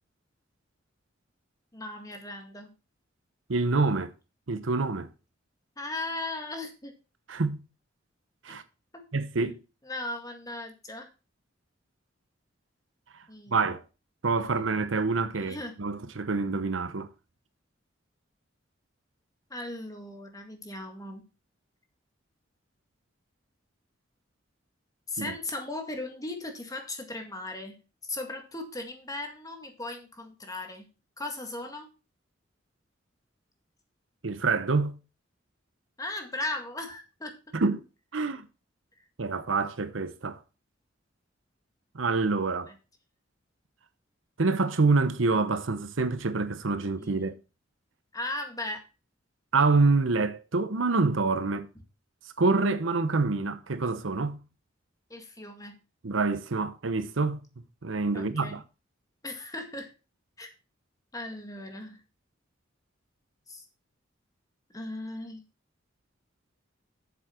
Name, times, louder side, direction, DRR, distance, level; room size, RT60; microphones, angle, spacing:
voice 1, 1.7-2.7 5.8-6.9 8.5-8.6 8.9-9.1 9.8-11.1 13.3-13.6 15.3-15.7 19.5-21.3 25.1-30.9 31.2-31.9 36.0-37.4 42.7-42.8 47.0-47.4 48.1-48.8 55.1-55.8 58.1-58.6 59.2-59.9 60.4-60.5 61.1-62.0 63.5-63.6 64.7-65.4, left 2 dB, 20° left, 1.9 m, -37 dB
voice 2, 3.5-4.1 4.5-5.1 7.3-7.6 8.4-8.6 9.1-9.6 13.5-13.8 14.2-17.1 25.2-25.3 34.2-34.9 37.5-37.8 38.1-38.5 39.2-40.4 41.9-42.7 44.4-47.3 49.5-51.7 52.4-54.4 56.0-57.4 57.8-58.6, right 3 dB, 85° right, 0.9 m, -26 dB
8.1 x 7.3 x 4.4 m
head